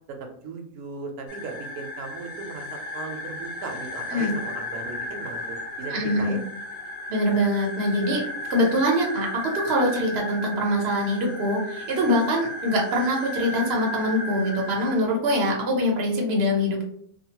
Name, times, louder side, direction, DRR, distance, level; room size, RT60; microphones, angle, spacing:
voice 1, 0.1-6.4, right 4 dB, 85° right, 2 dB, 1.1 m, -37 dB
sound 1, 1.3-15.0, left 1 dB, 80° left, 1.3 m, -35 dB
voice 2, 5.9-6.4 7.1-8.2 8.5-16.8, equal, 50° right, -1 dB, 0.9 m, -24 dB
2.7 x 2.3 x 2.8 m, 0.62 s
omnidirectional pair, 1.6 m